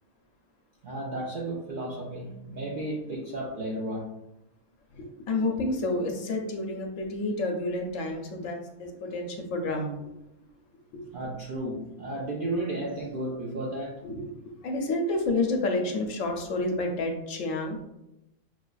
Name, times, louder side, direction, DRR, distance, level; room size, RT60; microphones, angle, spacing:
voice 1, 0.8-4.1 11.1-14.0, right 1 dB, 60° right, -4 dB, 0.5 m, -33 dB
voice 2, 4.9-10.0 10.9-11.1 14.0-14.3 14.6-17.8, left 2 dB, 70° left, 2 dB, 0.9 m, -29 dB
5.9 x 2.4 x 2.3 m, 0.89 s
omnidirectional pair, 1.5 m